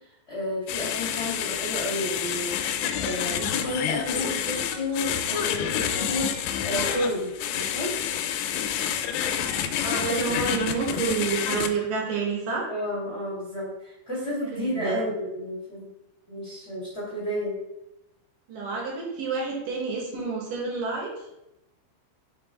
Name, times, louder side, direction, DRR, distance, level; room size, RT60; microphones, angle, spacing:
voice 1, 0.3-2.6 3.0-7.9 12.7-15.9 16.3-17.6, left 1 dB, 40° left, -9 dB, 0.9 m, -31 dB
sound 1, 0.7-11.7, left 9 dB, 90° left, 2.8 m, -28 dB
voice 2, 9.8-12.6 14.4-15.1 18.5-21.1, right 5 dB, 65° right, -3 dB, 2.5 m, -29 dB
5.7 x 4.6 x 3.6 m, 0.87 s
omnidirectional pair, 5.0 m